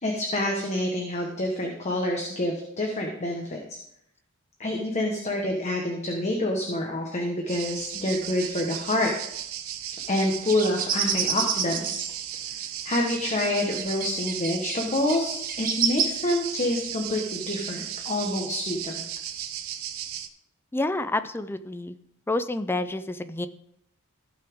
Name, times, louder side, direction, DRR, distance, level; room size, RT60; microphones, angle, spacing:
voice 1, 0.0-3.8 4.6-9.1 10.1-12.0 12.8-19.0, left 1 dB, 30° left, 1 dB, 1.2 m, -27 dB
sound 1, 7.5-20.3, right 10 dB, 75° right, 0.7 m, -36 dB
sound 2, 10.5-12.2 13.0-13.1 13.7-14.8 15.1-16.0, right 7 dB, 40° right, 1.1 m, -28 dB
voice 2, 20.7-22.0 22.3-23.5, left 2 dB, 10° left, 11 dB, 0.4 m, -28 dB
15.5 x 6.0 x 3.6 m, 0.75 s
head